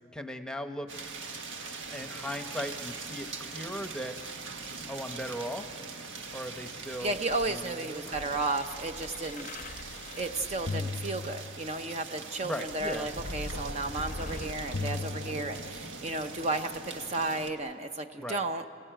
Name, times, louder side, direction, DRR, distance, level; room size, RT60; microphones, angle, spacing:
voice 1, 0.1-0.9 1.9-4.2 4.9-5.7 6.3-7.2 7.4-8.1 12.4-13.1 18.2-18.4, equal, 5° left, 7 dB, 0.9 m, -38 dB
sound 1, 0.9-17.5, right 4 dB, 90° right, 1.7 m, -42 dB
voice 2, 7.0-9.5 10.2-18.6, right 2 dB, 35° right, 7 dB, 0.7 m, -33 dB
sound 2, 7.2-11.9 12.7-16.0 16.7-16.8, left 3 dB, 40° left, 0.6 m, -40 dB
29.0 x 17.0 x 9.1 m, 2.6 s
head